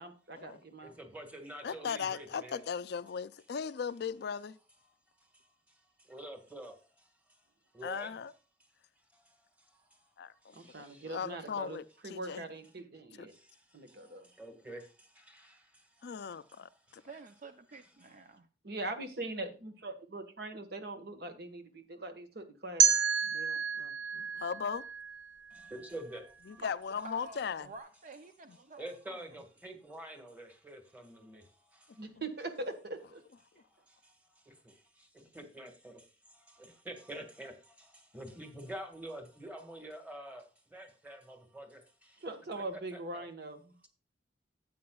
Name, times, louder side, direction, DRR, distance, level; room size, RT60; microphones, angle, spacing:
voice 1, 0.0-0.9 10.5-11.8 12.0-13.3 13.7-14.3 18.6-22.9 23.2-24.4 32.0-33.2 42.2-43.7, right 2 dB, 60° right, 1.4 m, -42 dB
voice 2, 0.8-2.6 4.8-4.9 5.3-7.1 7.7-8.2 9.1-10.1 10.4-11.2 13.3-17.1 17.7-17.9 25.5-26.6 27.3-27.4 28.5-32.0 33.9-34.1 34.5-42.2 42.7-43.3, right 1 dB, 10° right, 1.6 m, -48 dB
voice 3, 1.6-4.6 7.8-8.3 10.2-12.5 13.2-13.3 16.0-17.0 24.4-24.8 26.5-27.7 28.5-28.6, left 6 dB, 65° left, 0.4 m, -38 dB
voice 4, 17.0-18.3 26.6-26.7 27.0-28.8, right 3 dB, 45° right, 0.5 m, -49 dB
sound 1, 22.8-25.7, right 6 dB, 80° right, 0.8 m, -30 dB
12.5 x 8.6 x 2.3 m
head